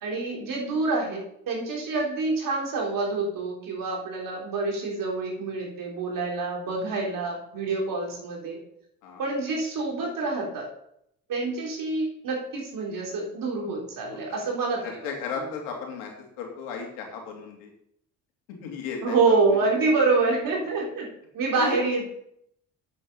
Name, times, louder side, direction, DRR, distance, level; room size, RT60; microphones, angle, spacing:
voice 1, 0.0-1.2 1.5-8.6 9.2-10.7 11.3-15.1 19.0-21.1 21.3-22.1, right 3 dB, 60° right, -1 dB, 3.8 m, -27 dB
voice 2, 14.0-14.4 14.8-16.1 16.4-17.7 18.6-19.4 21.5-21.8, left 5 dB, 90° left, 1 dB, 2.7 m, -35 dB
8.8 x 8.1 x 5.4 m, 0.73 s
supercardioid pair, 70°, 37 cm